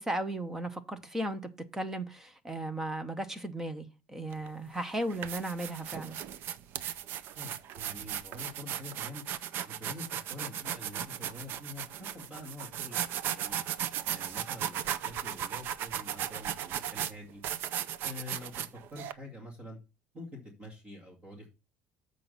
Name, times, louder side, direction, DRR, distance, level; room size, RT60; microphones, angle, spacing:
voice 1, 0.0-1.4 1.7-6.2, right 1 dB, 10° right, 0.8 m, -35 dB
sound 1, 4.3-4.5 5.0-19.1, right 10 dB, 50° right, 0.5 m, -36 dB
voice 2, 7.4-9.2 9.7-13.6 14.1-17.4 18.0-18.6 18.9-19.8 20.1-21.5, left 2 dB, 25° right, 2.3 m, -46 dB
7.6 x 5.1 x 5.5 m
cardioid pair, 170°, 5 cm